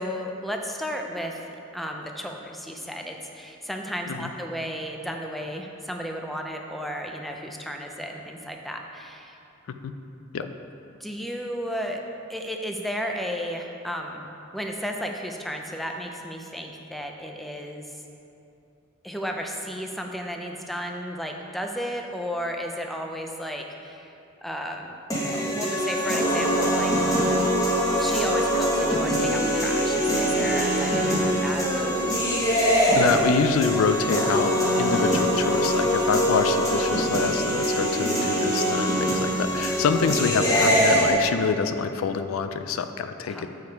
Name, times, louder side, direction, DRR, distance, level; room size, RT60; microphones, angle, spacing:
voice 1, 0.0-1.4 1.7-9.4 11.0-12.0 12.3-14.3 14.5-18.0 19.0-24.1 24.4-25.0 25.3-26.9 28.0-31.8 43.2-43.5, equal, ahead, 2 dB, 0.4 m, -33 dB
sound 1, 25.1-41.1, equal, 15° left, 1.1 m, -23 dB
voice 2, 32.9-43.5, left 5 dB, 85° left, 9 dB, 0.4 m, -26 dB
7.2 x 4.8 x 4.5 m, 2.7 s
head